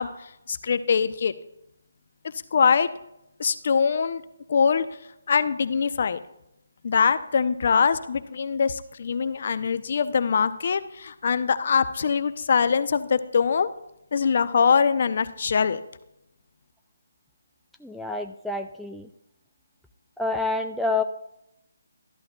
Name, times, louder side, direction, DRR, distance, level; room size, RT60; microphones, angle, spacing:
voice 1, 0.0-1.3 2.5-2.9 3.4-4.2 4.5-4.9 5.3-6.2 6.8-13.7 14.1-15.8, left 6 dB, 50° left, 13 dB, 0.5 m, -23 dB
voice 2, 17.8-19.1 20.2-21.0, left 3 dB, ahead, 2 dB, 0.3 m, -28 dB
12.5 x 11.5 x 2.3 m, 0.83 s
figure-of-eight pair, 155°, 0 cm